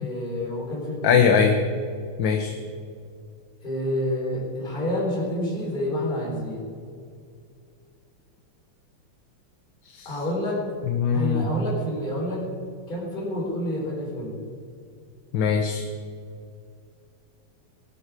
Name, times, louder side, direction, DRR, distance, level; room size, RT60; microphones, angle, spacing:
voice 1, 0.0-1.2 3.6-6.7 10.0-10.6 11.1-12.4 12.9-14.4, left 1 dB, 20° left, -4 dB, 4.0 m, -28 dB
voice 2, 1.0-1.6 2.2-2.5 9.9-10.1 10.9-11.5 15.3-15.8, left 7 dB, 65° left, 4 dB, 1.6 m, -21 dB
18.0 x 12.5 x 4.8 m, 2.3 s
omnidirectional pair, 2.3 m